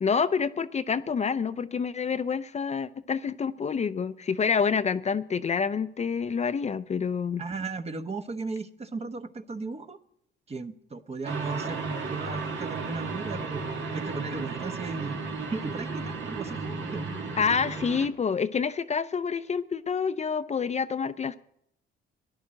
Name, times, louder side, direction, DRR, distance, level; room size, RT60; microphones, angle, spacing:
voice 1, 0.0-7.4 17.4-21.4, left 6 dB, 35° left, 11 dB, 0.5 m, -27 dB
voice 2, 7.4-10.0 10.5-15.2 15.5-17.0, right 4 dB, 30° right, 8 dB, 1.1 m, -36 dB
sound 1, 11.2-18.1, right 4 dB, 70° right, 2.1 m, -34 dB
13.0 x 11.0 x 7.6 m, 0.74 s
cardioid pair, 90°, 20 cm